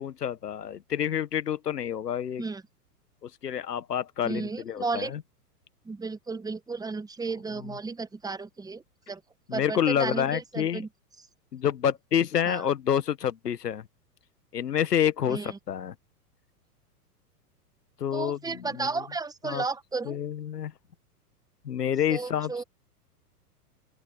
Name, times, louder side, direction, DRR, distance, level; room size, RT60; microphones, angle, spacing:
voice 1, 0.0-2.4 3.2-5.2 9.5-10.8 11.5-13.9 14.5-15.9 18.0-18.9 19.4-19.6 20.0-20.7 21.6-22.6, left 9 dB, 75° left, 1.7 m, -28 dB
voice 2, 4.2-5.1 5.8-9.2 9.5-10.9 12.4-12.7 15.3-15.6 18.1-20.2 22.1-22.6, right 4 dB, 10° right, 1.6 m, -33 dB
open air
figure-of-eight pair, 100°, 48 cm